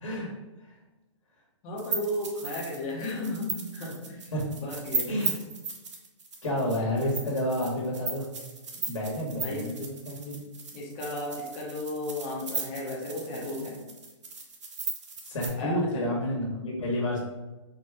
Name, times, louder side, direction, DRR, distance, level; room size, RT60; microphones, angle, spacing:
voice 1, 0.0-0.3 0.6-0.7 4.3-4.5 5.1-5.3 6.4-8.3 8.9-10.4 15.2-17.2, equal, 80° left, -3 dB, 1.5 m, -30 dB
voice 2, 1.6-5.2 8.7-8.8 9.4-9.7 10.7-13.8 15.6-16.0, left 1 dB, 20° left, -3 dB, 0.8 m, -34 dB
sound 1, 1.8-15.5, right 4 dB, 65° right, 1.1 m, -36 dB
4.5 x 2.3 x 4.7 m, 1.1 s
hypercardioid pair, 165°, 16 cm